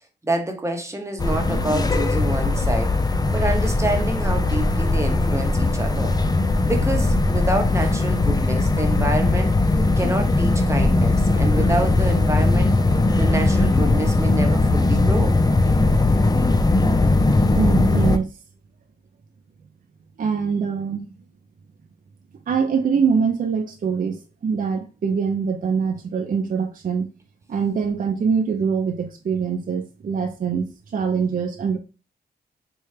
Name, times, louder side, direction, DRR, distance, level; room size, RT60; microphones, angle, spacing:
voice 1, 0.2-3.0 3.3-6.2 6.6-9.6 10.0-12.7 13.2-15.4, right 1 dB, 15° right, 0.9 m, -27 dB
sound 1, 1.2-18.2, left 2 dB, 20° left, 0.5 m, -19 dB
voice 2, 17.5-18.3 20.2-21.1 22.5-27.1 27.5-31.8, right 6 dB, 50° right, 0.5 m, -23 dB
4.3 x 2.3 x 3.2 m
cardioid pair, 65°, 18 cm